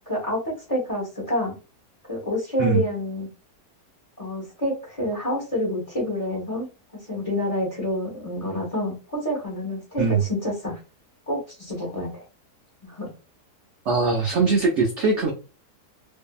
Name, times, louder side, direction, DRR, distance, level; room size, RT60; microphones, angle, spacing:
voice 1, 0.1-1.6 2.1-3.3 4.2-6.7 7.0-10.8 11.3-12.2 12.8-13.1, left 1 dB, 30° left, -1 dB, 0.8 m, -28 dB
voice 2, 13.9-15.3, right 4 dB, 80° right, 1 dB, 0.6 m, -21 dB
2.6 x 2.6 x 2.3 m, 0.32 s
omnidirectional pair, 1.8 m